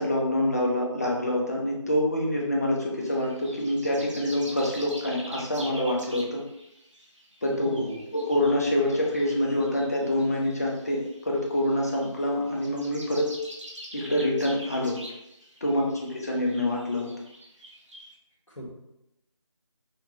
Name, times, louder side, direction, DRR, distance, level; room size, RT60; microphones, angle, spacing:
voice 1, 0.0-6.4 7.4-7.8 8.1-13.3 13.9-15.0 15.6-17.1, left 1 dB, 30° left, -2 dB, 0.8 m, -26 dB
sound 1, 3.0-18.1, equal, 65° right, 1.1 m, -45 dB
voice 2, 7.5-8.0 18.5-18.7, left 1 dB, 70° left, -7 dB, 1.4 m, -36 dB
5.7 x 2.3 x 3.0 m, 0.85 s
figure-of-eight pair, 165°, 16 cm